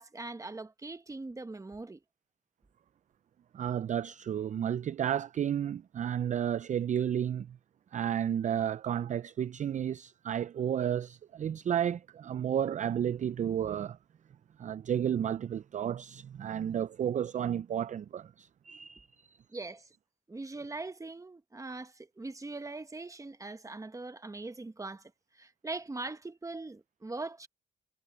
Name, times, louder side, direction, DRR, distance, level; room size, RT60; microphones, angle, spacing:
voice 1, 0.0-2.0 19.5-19.9 20.3-27.5, right 3 dB, 15° right, 1.2 m, -41 dB
voice 2, 3.5-7.6 7.9-14.0 14.6-19.4, right 9 dB, 40° right, 0.4 m, -32 dB
cardioid pair, 90°, 20 cm